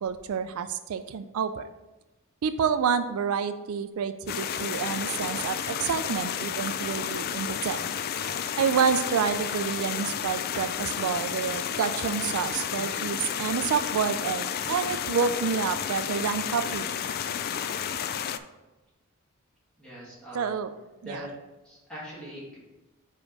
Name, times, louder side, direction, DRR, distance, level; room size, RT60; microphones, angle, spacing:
voice 1, 0.0-1.6 2.4-7.8 8.6-16.9 20.3-20.7 21.0-21.2, right 6 dB, 75° right, 10 dB, 0.4 m, -28 dB
sound 1, 4.3-18.4, left 8 dB, 45° left, 0.3 m, -31 dB
voice 2, 19.8-20.6 21.0-21.3 21.6-22.6, equal, 5° left, -8 dB, 2.2 m, -41 dB
5.1 x 4.7 x 5.2 m, 1.1 s
head